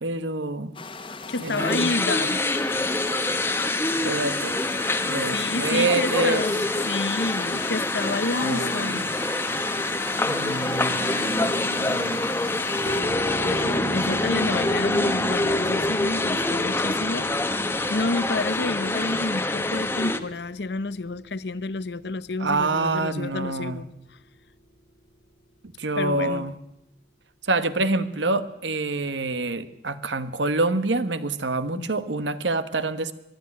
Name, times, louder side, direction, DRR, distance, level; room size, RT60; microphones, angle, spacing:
voice 1, 0.0-0.7 1.4-1.9 4.0-4.6 5.0-6.4 8.4-9.0 10.2-12.2 13.6-16.0 22.4-23.8 25.8-26.5 27.4-33.1, right 2 dB, 80° right, 12 dB, 1.2 m, -27 dB
sound 1, 0.7-13.0, left 3 dB, 30° left, 1.4 m, -39 dB
voice 2, 1.3-2.4 5.3-9.1 13.4-17.5 17.9-24.2 26.0-26.5 31.7-31.9, left 3 dB, 65° left, 17 dB, 0.8 m, -29 dB
sound 2, 1.6-20.2, left 2 dB, 15° left, 1.0 m, -25 dB
sound 3, 12.8-25.7, right 1 dB, 50° left, 1.9 m, -41 dB
22.5 x 12.5 x 9.6 m, 0.90 s
head